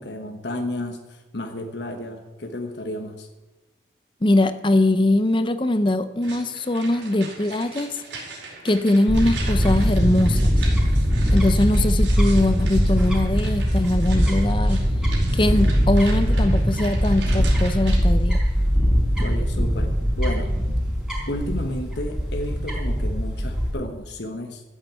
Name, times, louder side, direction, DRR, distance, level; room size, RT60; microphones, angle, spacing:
voice 1, 0.0-3.3 19.2-20.5 21.3-24.6, left 1 dB, 70° left, 5 dB, 1.3 m, -32 dB
voice 2, 4.2-8.0 8.6-10.6 11.3-14.8 15.3-18.4, left 1 dB, 25° left, 12 dB, 0.6 m, -21 dB
sound 1, 6.2-18.0, right 4 dB, 80° right, 4.7 m, -40 dB
Fowl / Bird, 9.1-23.7, equal, 5° right, 4.3 m, -21 dB
13.5 x 8.8 x 8.2 m, 1.1 s
head